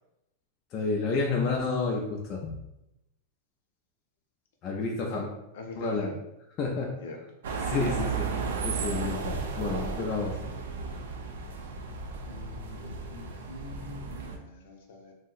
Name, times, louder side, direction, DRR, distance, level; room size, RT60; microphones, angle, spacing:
voice 1, 0.7-2.6 4.6-5.3 5.8-6.1 6.6-6.9 7.6-8.3 8.6-10.4, left 4 dB, 25° left, -2 dB, 0.3 m, -30 dB
voice 2, 5.5-6.2 7.0-7.2 12.3-15.1, left 3 dB, 60° left, 2 dB, 0.6 m, -43 dB
sound 1, 7.4-14.4, right 5 dB, 75° right, 0.5 m, -34 dB
2.6 x 2.0 x 3.8 m, 0.88 s
supercardioid pair, 175°, 0 cm